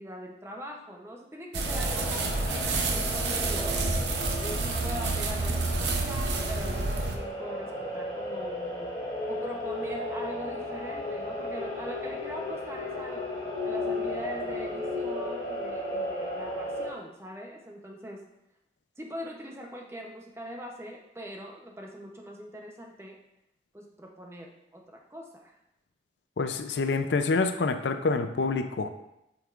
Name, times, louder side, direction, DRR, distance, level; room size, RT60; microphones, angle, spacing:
voice 1, 0.0-3.8 4.4-8.9 9.3-13.2 13.6-18.2 19.0-23.2 23.7-25.5, equal, 15° right, 1 dB, 0.7 m, -42 dB
sound 1, 1.5-7.2, right 3 dB, 85° right, 0.8 m, -29 dB
sound 2, 1.6-16.9, left 1 dB, 20° left, 1.3 m, -35 dB
voice 2, 26.4-28.9, left 4 dB, 85° left, 9 dB, 0.5 m, -27 dB
7.6 x 5.3 x 2.4 m, 0.85 s
head